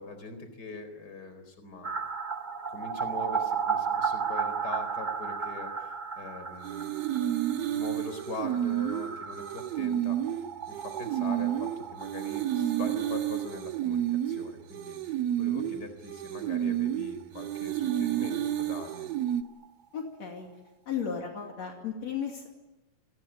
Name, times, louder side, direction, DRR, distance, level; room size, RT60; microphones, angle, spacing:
voice 1, 0.0-1.9 2.7-6.9 7.7-19.1, left 3 dB, 35° left, 9 dB, 4.7 m, -42 dB
sound 1, 1.8-13.4 13.7-13.8 14.1-14.2 17.2-17.3 17.5-17.6 17.9-19.7 20.0-20.1, right 6 dB, 45° right, 0.5 m, -35 dB
sound 2, 6.6-19.4, right 11 dB, 65° right, 2.3 m, -31 dB
voice 2, 19.9-20.5 20.9-22.5, left 7 dB, 65° left, 2 dB, 3.6 m, -34 dB
28.5 x 21.0 x 9.2 m, 1.0 s
omnidirectional pair, 3.4 m